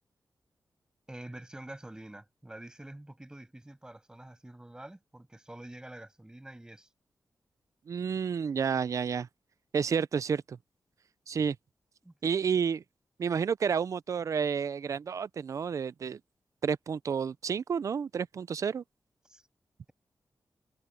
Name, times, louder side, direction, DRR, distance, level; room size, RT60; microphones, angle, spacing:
voice 1, 1.1-6.9 12.0-12.1 19.3-19.4, right 1 dB, 10° right, 7.1 m, -47 dB
voice 2, 7.9-9.3 9.7-10.6 11.3-11.6 12.2-12.8 13.2-16.2 16.6-18.8, right 6 dB, 55° right, 0.5 m, -30 dB
wide cardioid pair, 155°, 6 cm